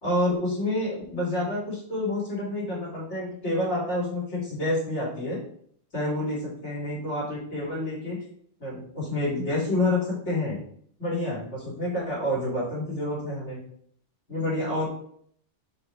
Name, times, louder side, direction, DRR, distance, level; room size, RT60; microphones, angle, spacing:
voice 1, 0.0-5.4 5.9-8.2 8.6-10.6 11.0-13.6 14.3-14.9, left 1 dB, 85° left, -6 dB, 2.9 m, -28 dB
5.9 x 4.8 x 3.3 m, 0.63 s
omnidirectional pair, 1.2 m